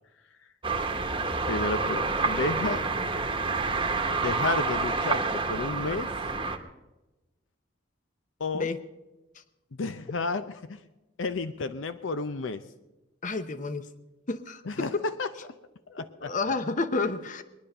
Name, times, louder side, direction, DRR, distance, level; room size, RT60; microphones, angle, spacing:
sound 1, 0.6-6.6, right 4 dB, 25° right, 1.1 m, -28 dB
voice 1, 1.5-2.8 4.2-6.1 8.4-8.7 9.8-10.8 11.2-12.6 14.7-14.9 15.2-15.3 15.9-16.3, left 3 dB, 75° left, 11 dB, 0.6 m, -31 dB
voice 2, 13.2-13.9 14.3-15.0 16.0-17.4, left 3 dB, 40° left, 11 dB, 0.8 m, -30 dB
22.0 x 10.5 x 5.4 m, 1.0 s
head